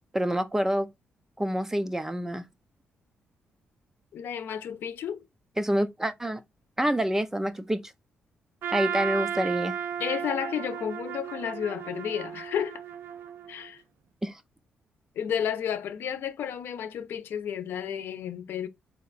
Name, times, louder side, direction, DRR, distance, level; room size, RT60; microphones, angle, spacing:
voice 1, 0.1-0.9 1.4-2.4 5.6-6.4 6.8-7.9 8.7-9.8 14.2-14.4, equal, 10° right, 0.4 m, -27 dB
voice 2, 4.1-5.3 10.0-12.8 13.5-13.8 15.2-18.7, left 8 dB, 75° left, 0.7 m, -32 dB
Trumpet, 8.6-13.7, right 8 dB, 75° right, 0.6 m, -34 dB
4.3 x 2.8 x 4.0 m
cardioid pair, 125°, 4 cm